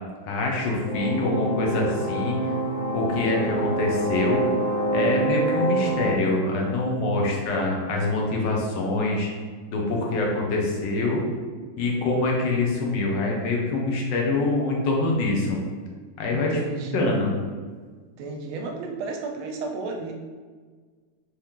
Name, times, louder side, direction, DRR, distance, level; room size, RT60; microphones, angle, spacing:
voice 1, 0.2-2.4 2.9-4.4 4.9-9.3 9.7-11.2 11.8-15.6 16.2-16.6 16.9-17.3, left 2 dB, 65° left, -1 dB, 1.4 m, -25 dB
sound 1, 0.8-6.2, right 1 dB, 80° left, 0.7 m, -26 dB
voice 2, 16.3-17.1 18.2-20.1, right 4 dB, 80° right, 2 dB, 1.4 m, -33 dB
4.4 x 3.3 x 3.6 m, 1.5 s
omnidirectional pair, 2.4 m